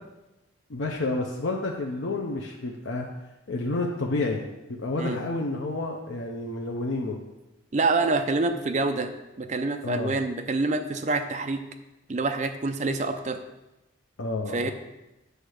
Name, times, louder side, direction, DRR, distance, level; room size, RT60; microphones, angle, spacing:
voice 1, 0.7-3.1 3.5-7.2 9.8-10.2 14.2-14.7, left 2 dB, 75° left, 0 dB, 0.7 m, -30 dB
voice 2, 7.7-9.1 9.4-11.6 12.1-13.4 14.5-14.7, right 3 dB, 35° right, 6 dB, 0.5 m, -26 dB
7.9 x 3.3 x 6.4 m, 0.98 s
head